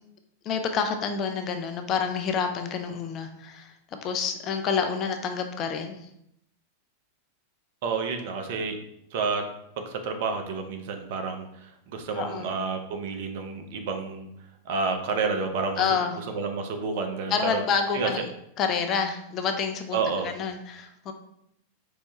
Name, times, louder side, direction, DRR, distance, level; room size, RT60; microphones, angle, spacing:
voice 1, 0.4-3.8 4.0-6.1 12.1-12.5 15.8-16.1 17.3-18.2 18.6-21.1, left 6 dB, 35° left, 6 dB, 0.4 m, -28 dB
voice 2, 7.8-8.8 9.1-9.4 9.8-14.3 14.7-15.8 16.3-17.6 17.9-18.1 19.9-20.3, right 4 dB, 50° right, 5 dB, 0.5 m, -30 dB
4.5 x 2.1 x 2.9 m, 0.78 s
figure-of-eight pair, 90°, 0 cm